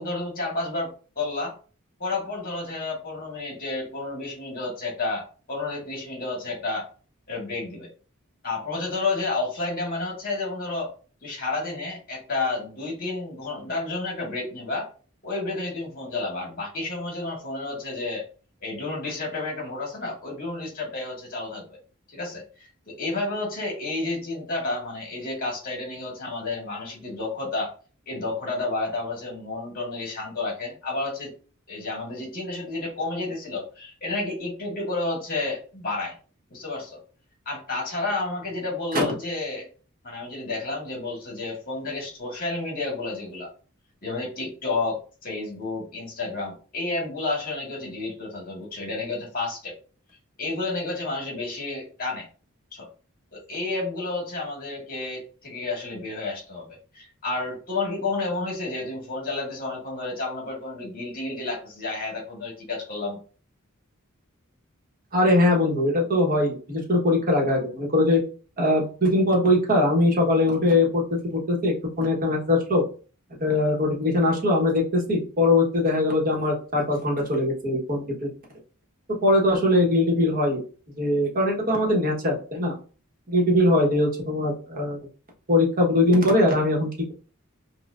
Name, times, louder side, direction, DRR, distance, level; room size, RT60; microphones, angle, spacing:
voice 1, 0.0-1.6 2.0-6.9 7.3-7.9 8.4-10.9 11.2-14.9 15.2-18.2 18.6-21.6 22.1-27.7 28.1-31.3 31.7-36.2 36.5-37.0 37.5-39.7 40.0-43.5 44.0-49.8 50.4-52.3 52.7-52.9 53.3-56.7 56.9-63.2, left 3 dB, 45° left, -1 dB, 1.7 m, -31 dB
voice 2, 65.1-68.2 68.6-72.8 73.4-78.3 79.2-80.6 81.0-82.7 83.3-85.0 85.5-87.1, left 1 dB, 45° right, -1 dB, 1.2 m, -21 dB
5.3 x 2.4 x 2.5 m, 0.38 s
head